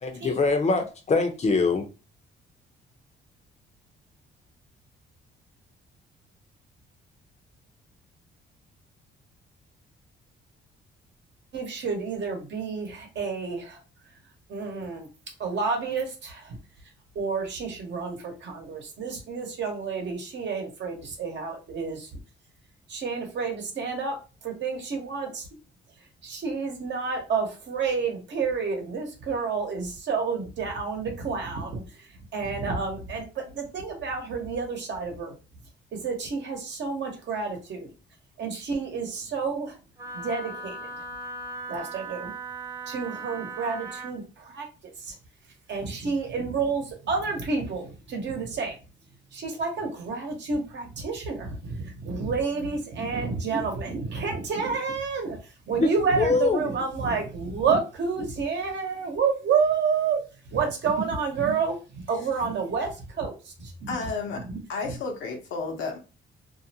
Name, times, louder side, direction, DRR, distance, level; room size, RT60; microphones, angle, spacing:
voice 1, 0.0-1.9 55.8-55.9 56.2-56.7, left 3 dB, 35° left, 4 dB, 0.6 m, -23 dB
voice 2, 11.5-13.8 14.5-15.1 15.4-16.6 17.1-22.1 22.9-24.1 24.4-25.5 26.2-35.3 35.9-37.9 38.4-39.8 40.1-40.9 41.7-42.3 42.9-45.1 45.7-48.7 49.3-60.2 60.5-63.9 64.4-64.6 64.8-65.0, right 5 dB, 65° right, 3 dB, 0.9 m, -29 dB
Wind instrument woodwind instrument, 40.0-44.2, right 3 dB, 15° right, 0.6 m, -38 dB
voice 3, 63.9-64.4 64.7-66.0, left 4 dB, 75° left, 2 dB, 0.8 m, -31 dB
2.6 x 2.1 x 2.7 m, 0.32 s
cardioid pair, 90°, 20 cm